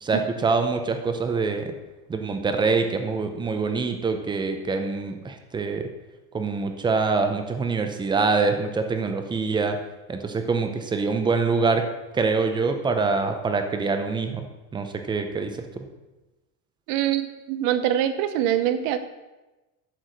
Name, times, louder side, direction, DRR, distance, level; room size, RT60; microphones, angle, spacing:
voice 1, 0.0-1.7 2.1-5.8 6.3-9.8 10.1-11.8 12.1-14.5 14.7-15.5 15.8-15.9, right 4 dB, 10° right, 6 dB, 0.6 m, -25 dB
voice 2, 16.9-19.0, right 11 dB, 50° right, 11 dB, 0.9 m, -24 dB
11.5 x 4.7 x 6.6 m, 1.1 s
cardioid pair, 165°, 43 cm